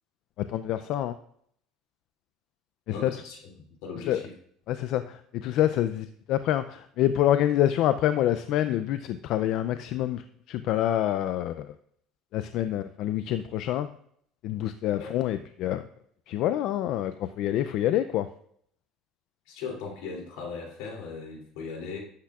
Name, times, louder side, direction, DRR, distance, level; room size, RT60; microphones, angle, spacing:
voice 1, 0.5-1.2 3.0-3.1 4.1-4.2 4.7-11.7 12.3-13.9 14.4-15.8 16.3-18.3, left 12 dB, 65° left, 11 dB, 0.4 m, -27 dB
voice 2, 2.9-3.4 3.8-4.3 14.9-15.1 19.5-22.0, left 5 dB, 85° left, -1 dB, 2.9 m, -38 dB
11.5 x 8.6 x 2.4 m, 0.67 s
cardioid pair, 120°, 0 cm